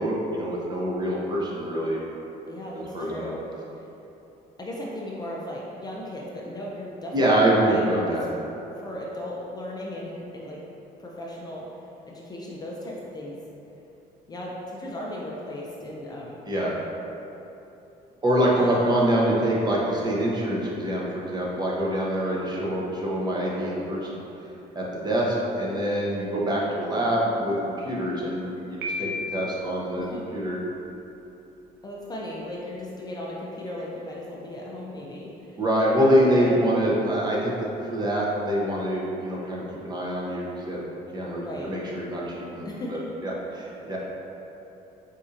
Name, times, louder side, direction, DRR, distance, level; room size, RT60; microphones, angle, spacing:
voice 1, 0.0-2.0 2.7-3.2 7.1-8.2 16.5-16.7 18.2-24.1 24.7-30.0 30.3-30.6 35.6-37.5 37.9-40.8 41.1-42.6 42.9-44.0, right 1 dB, 25° right, -4 dB, 0.6 m, -25 dB
voice 2, 2.5-3.4 3.7-3.9 4.6-8.3 8.8-10.6 11.0-11.7 12.1-13.4 14.3-16.4 18.6-18.9 30.0-30.2 31.8-35.6 36.3-36.6 41.4-41.7 42.7-43.0, left 1 dB, 25° left, -4 dB, 0.4 m, -36 dB
Piano, 28.8-29.8, left 2 dB, 90° right, 0.5 m, -32 dB
4.2 x 2.7 x 2.4 m, 2.9 s
cardioid pair, 110°, 17 cm